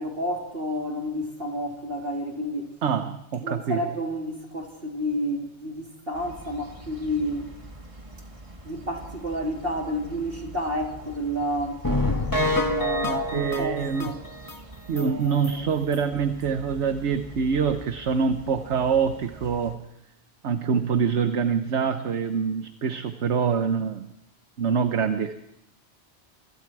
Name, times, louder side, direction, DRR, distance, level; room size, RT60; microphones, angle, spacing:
voice 1, 0.0-2.7 3.4-7.5 8.6-11.9 12.4-14.2 14.9-15.7, equal, 55° right, 3.8 m, -30 dB
voice 2, 2.8-3.8 13.0-14.1 14.9-19.9 20.4-24.1 24.6-25.3, right 6 dB, 75° right, 1.3 m, -25 dB
sound 1, 6.1-19.8, right 2 dB, 30° right, 2.1 m, -45 dB
sound 2, 11.8-14.6 15.0-15.1 15.4-15.5 15.9-16.0, left 1 dB, 20° left, 1.4 m, -26 dB
27.5 x 25.5 x 4.8 m
omnidirectional pair, 1.2 m